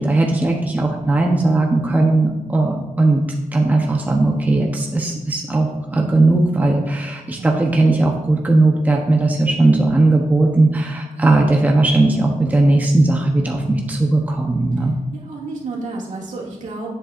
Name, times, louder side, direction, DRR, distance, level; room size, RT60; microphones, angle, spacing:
voice 1, 0.0-3.2 3.5-14.9, right 2 dB, 10° right, 0 dB, 0.8 m, -17 dB
voice 2, 15.1-16.9, right 3 dB, 70° right, -3 dB, 2.2 m, -31 dB
9.3 x 7.8 x 2.5 m, 1.0 s
wide cardioid pair, 145°, 13 cm